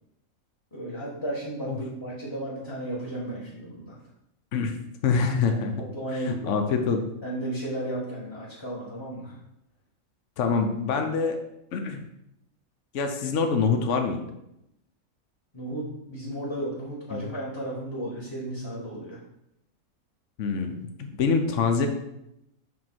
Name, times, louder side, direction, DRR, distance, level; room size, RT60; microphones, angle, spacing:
voice 1, 0.7-3.9 5.9-6.5 7.2-9.3 15.5-19.2, right 1 dB, 20° left, -7 dB, 1.5 m, -34 dB
voice 2, 5.0-5.7 6.1-7.0 10.4-11.4 11.7-12.0 12.9-14.2 17.1-17.2 20.4-21.9, left 5 dB, 60° left, 5 dB, 1.1 m, -25 dB
7.2 x 3.7 x 6.0 m, 0.81 s
omnidirectional pair, 1.5 m